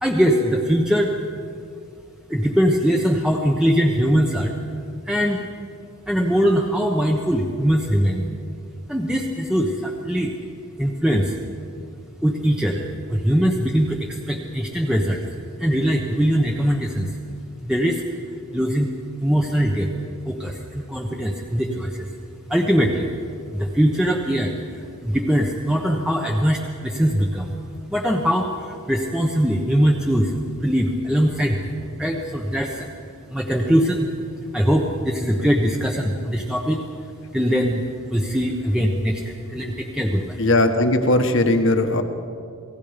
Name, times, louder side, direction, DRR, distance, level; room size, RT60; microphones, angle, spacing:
voice 1, 0.0-1.1 2.3-4.6 5.1-5.4 6.1-8.3 8.9-10.3 10.8-11.4 12.2-15.2 15.6-17.2 17.6-18.0 18.5-18.9 19.2-19.9 20.2-22.1 22.5-23.1 23.5-27.5 27.9-30.3 30.6-31.7 32.0-32.9 33.3-34.1 34.5-36.8 37.3-37.8 38.1-40.4, equal, 5° right, 0 dB, 1.1 m, -21 dB
voice 2, 40.4-42.0, left 2 dB, 55° left, 6 dB, 1.5 m, -18 dB
28.5 x 19.0 x 5.2 m, 2.5 s
head